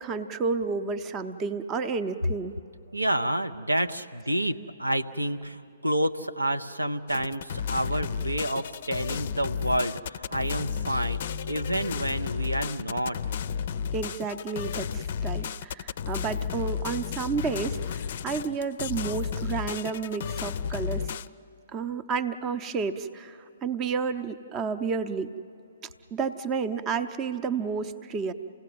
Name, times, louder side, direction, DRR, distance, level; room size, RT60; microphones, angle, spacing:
voice 1, 0.0-2.6 13.9-21.1 21.7-25.3 26.1-28.3, right 5 dB, 20° right, 13 dB, 0.7 m, -31 dB
voice 2, 2.9-13.2, right 1 dB, 90° right, 8 dB, 0.7 m, -29 dB
sound 1, 7.1-21.3, left 7 dB, 50° left, 0.4 m, -33 dB
28.0 x 17.0 x 7.9 m, 2.7 s
figure-of-eight pair, 125°, 0 cm